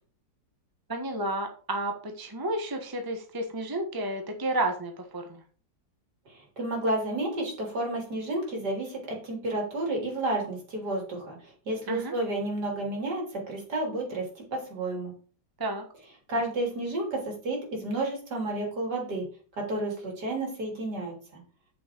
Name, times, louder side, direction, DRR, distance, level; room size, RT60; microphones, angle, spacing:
voice 1, 0.9-5.4 11.9-12.1 15.6-15.8, right 1 dB, 15° right, 4 dB, 1.2 m, -31 dB
voice 2, 6.3-14.3 14.5-15.1 16.3-19.2 19.6-21.4, right 1 dB, 65° right, 0 dB, 3.9 m, -31 dB
8.5 x 6.9 x 4.6 m, 0.40 s
omnidirectional pair, 1.9 m